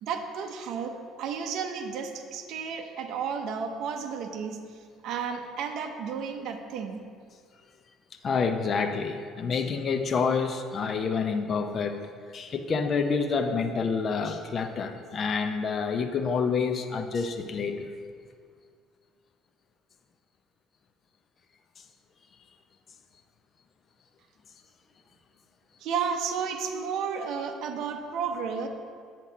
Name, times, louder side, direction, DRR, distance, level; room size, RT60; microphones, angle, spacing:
voice 1, 0.0-4.6 5.0-7.0 25.8-28.7, right 6 dB, 60° right, 5 dB, 0.7 m, -32 dB
voice 2, 8.2-17.9, left 5 dB, 30° left, 7 dB, 0.5 m, -28 dB
7.4 x 7.4 x 4.0 m, 2.1 s
cardioid pair, 150°, 0 cm